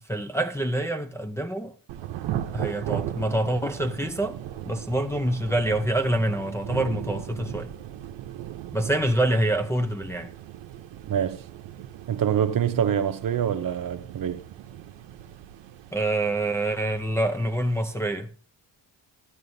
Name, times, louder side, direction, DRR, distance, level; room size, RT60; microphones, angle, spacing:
voice 1, 0.1-1.7 2.5-4.4 4.7-7.7 8.7-10.3 15.9-18.3, right 1 dB, 5° left, 0.6 m, -26 dB
Thunder / Rain, 1.9-18.1, right 12 dB, 85° right, 0.8 m, -38 dB
voice 2, 11.1-11.4 12.1-14.4, right 9 dB, 50° right, 0.8 m, -25 dB
12.5 x 11.0 x 2.7 m
cardioid pair, 90°, 42 cm